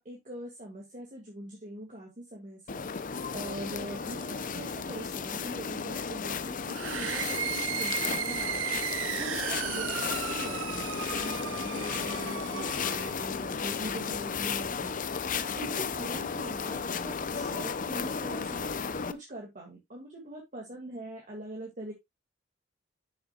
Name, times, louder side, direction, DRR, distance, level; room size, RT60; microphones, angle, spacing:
voice 1, 0.0-2.8 3.3-8.6 9.1-15.1 15.6-18.7 19.1-21.9, right 1 dB, 40° right, -1 dB, 2.3 m, -42 dB
sound 1, 2.7-19.1, left 6 dB, 45° left, 0.6 m, -34 dB
sound 2, 6.7-13.2, right 10 dB, 80° right, 0.4 m, -35 dB
10.0 x 6.9 x 2.4 m, 0.19 s
head